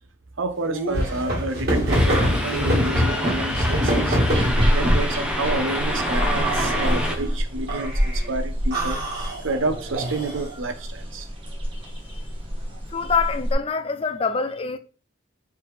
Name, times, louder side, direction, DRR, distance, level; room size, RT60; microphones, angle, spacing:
voice 1, 0.4-4.2 4.7-7.9 8.3-9.0 9.4-11.3, right 2 dB, 80° right, 0.7 m, -29 dB
sound 1, 0.6-5.1 5.9-7.2 7.7-8.3 8.7-10.5, equal, 50° right, 2.0 m, -24 dB
sound 2, 1.9-7.2, equal, 5° right, 0.6 m, -28 dB
sound 3, 4.3-13.5, equal, 25° right, 1.0 m, -27 dB
voice 2, 11.8-12.2 12.9-14.8, left 5 dB, 30° left, 0.4 m, -25 dB
4.8 x 3.4 x 3.1 m
head